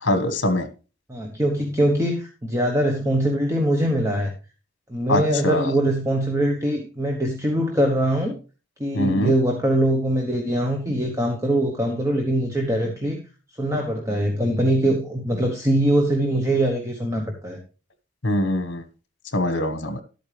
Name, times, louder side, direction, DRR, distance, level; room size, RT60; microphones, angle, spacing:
voice 1, 0.0-0.7 5.1-5.7 8.9-9.3 18.2-18.8 19.3-20.0, left 1 dB, 60° left, 9 dB, 1.5 m, -23 dB
voice 2, 1.1-4.3 4.9-8.4 8.8-13.2 13.6-17.6, right 1 dB, 15° right, 2 dB, 1.2 m, -22 dB
12.0 x 8.6 x 3.4 m, 0.33 s
head